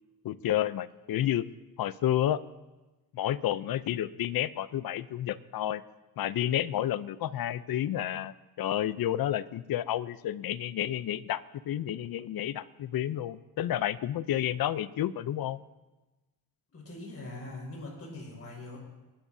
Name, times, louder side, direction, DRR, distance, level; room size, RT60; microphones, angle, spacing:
voice 1, 0.2-1.5 1.8-2.4 3.1-5.8 6.2-11.4 11.7-15.6, left 12 dB, 65° left, 16 dB, 0.7 m, -30 dB
voice 2, 16.7-18.8, left 2 dB, 40° left, -2 dB, 5.9 m, -42 dB
28.5 x 12.5 x 2.7 m, 1.1 s
cardioid pair, 115°, 38 cm